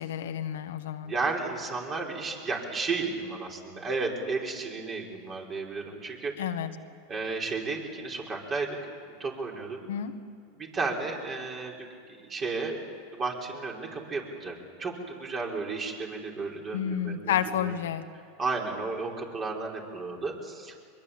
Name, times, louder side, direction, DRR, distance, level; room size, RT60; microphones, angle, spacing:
voice 1, 0.0-1.1 6.4-6.7 9.9-10.1 16.7-18.0, left 9 dB, 80° left, 7 dB, 1.4 m, -30 dB
voice 2, 1.0-6.3 7.1-8.8 9.1-9.8 10.5-12.8 13.1-17.7 18.4-20.7, right 3 dB, 30° right, 0 dB, 5.3 m, -33 dB
23.5 x 22.0 x 8.9 m, 2.1 s
hypercardioid pair, 105°, 0 cm